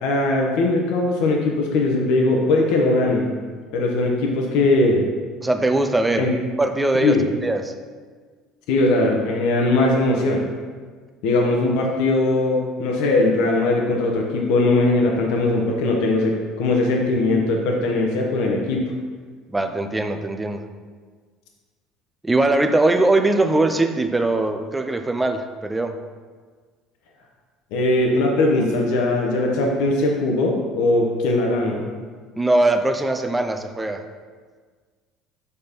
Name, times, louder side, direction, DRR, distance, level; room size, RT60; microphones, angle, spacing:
voice 1, 0.0-3.3 3.7-5.0 6.2-6.3 7.0-7.2 8.7-10.4 11.2-18.8 27.7-31.8, left 2 dB, 75° left, 0 dB, 1.0 m, -20 dB
voice 2, 5.4-6.3 6.6-7.2 7.4-7.7 19.5-20.6 22.2-26.0 32.3-34.0, right 2 dB, 10° right, 7 dB, 0.4 m, -21 dB
6.9 x 4.2 x 5.2 m, 1.6 s
cardioid pair, 155°, 0 cm